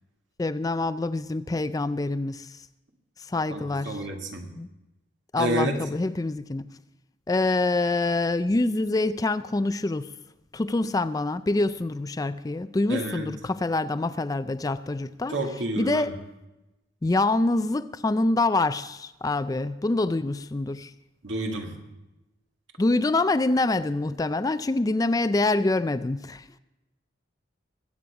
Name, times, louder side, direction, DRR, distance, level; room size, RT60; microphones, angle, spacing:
voice 1, 0.4-2.5 3.3-4.0 4.5-4.7 5.3-6.6 7.3-10.1 10.5-15.4 15.8-16.2 17.0-20.9 22.8-26.6, left 2 dB, 20° left, 0.3 m, -25 dB
voice 2, 3.5-4.5 5.4-5.8 12.9-13.3 15.3-16.1 21.2-21.7, right 1 dB, 80° right, 2.0 m, -29 dB
21.5 x 8.6 x 4.8 m
head